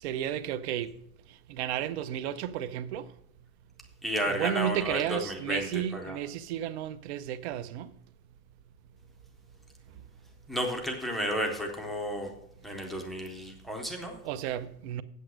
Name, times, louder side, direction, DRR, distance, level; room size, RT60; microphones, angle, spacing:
voice 1, 0.0-0.9 1.5-3.1 4.3-7.9 14.2-15.0, right 11 dB, 45° right, 0.5 m, -33 dB
voice 2, 4.0-6.2 10.5-12.3 12.6-14.2, equal, ahead, 0.5 m, -32 dB
8.2 x 7.9 x 6.2 m
supercardioid pair, 170°, 46 cm